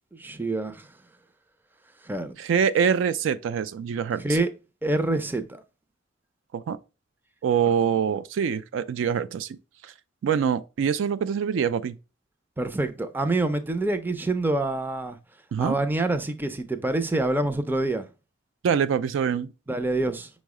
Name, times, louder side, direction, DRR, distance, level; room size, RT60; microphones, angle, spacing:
voice 1, 0.1-0.9 2.0-2.3 4.2-4.5 4.8-5.6 12.6-15.2 15.6-18.1 19.7-20.3, right 2 dB, 10° right, 0.4 m, -26 dB
voice 2, 2.4-4.4 6.5-6.8 7.4-9.5 9.8-9.9 10.2-12.0 15.5-15.8 18.6-19.5, right 7 dB, 85° right, 0.3 m, -24 dB
5.4 x 2.1 x 4.7 m
head